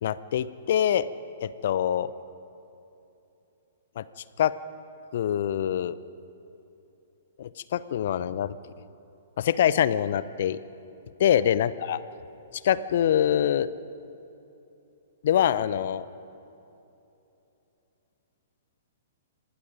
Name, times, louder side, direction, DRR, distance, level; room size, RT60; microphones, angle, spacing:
voice 1, 0.0-1.0 1.4-2.1 4.0-4.1 4.4-4.5 5.1-5.9 7.4-8.6 9.4-10.6 11.2-12.0 12.6-13.7 15.2-16.1, left 10 dB, 55° left, 17 dB, 0.7 m, -24 dB
27.0 x 19.5 x 5.1 m, 2.9 s
figure-of-eight pair, 115°, 0 cm